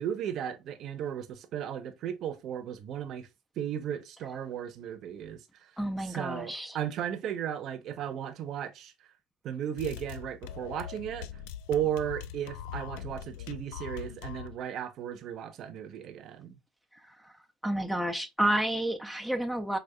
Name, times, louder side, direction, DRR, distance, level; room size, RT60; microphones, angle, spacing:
voice 1, 0.0-3.3 3.6-5.7 6.0-8.9 9.4-11.3 11.7-16.6, right 9 dB, 55° right, 0.7 m, -35 dB
voice 2, 5.8-6.8 17.0-17.3 17.6-19.8, right 1 dB, ahead, 0.4 m, -30 dB
sound 1, 9.8-14.6, left 9 dB, 90° left, 0.3 m, -42 dB
5.0 x 2.4 x 2.2 m
cardioid pair, 110°, 0 cm